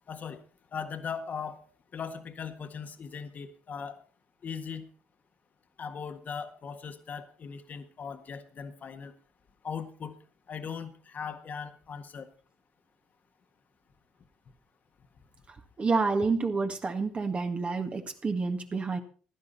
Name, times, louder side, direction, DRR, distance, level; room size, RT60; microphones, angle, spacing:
voice 1, 0.1-0.4 0.7-1.6 1.9-4.0 4.4-4.9 5.8-9.1 9.6-10.2 10.5-12.3, left 6 dB, 45° left, 8 dB, 1.6 m, -39 dB
voice 2, 15.8-19.0, right 4 dB, 30° right, 5 dB, 1.7 m, -28 dB
15.5 x 11.0 x 4.1 m, 0.39 s
supercardioid pair, 70°, 4 cm